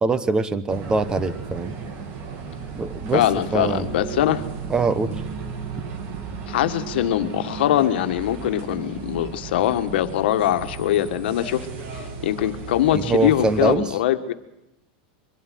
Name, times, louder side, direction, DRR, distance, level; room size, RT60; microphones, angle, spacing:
voice 1, 0.0-1.7 2.7-3.3 3.5-3.9 4.7-5.2 12.9-13.9, right 3 dB, 15° right, 14 dB, 1.1 m, -23 dB
sound 1, 0.7-13.7, right 6 dB, 40° right, 2.6 m, -35 dB
voice 2, 3.1-4.4 6.5-11.7 11.9-14.3, left 12 dB, 75° left, 9 dB, 1.5 m, -22 dB
23.5 x 12.5 x 9.3 m, 0.90 s
supercardioid pair, 150°, 6 cm